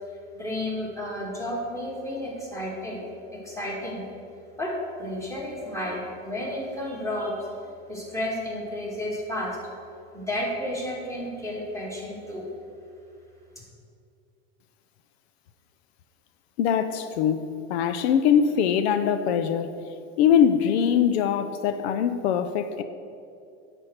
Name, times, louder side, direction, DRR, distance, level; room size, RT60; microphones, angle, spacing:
voice 1, 0.3-3.0 3.3-4.0 4.6-4.7 5.0-7.5 7.9-9.6 10.1-12.5, left 1 dB, 10° left, -3 dB, 2.2 m, -32 dB
voice 2, 16.6-19.8 20.2-22.8, left 8 dB, 85° left, 10 dB, 0.6 m, -22 dB
10.0 x 4.5 x 6.5 m, 2.5 s
supercardioid pair, 125°, 31 cm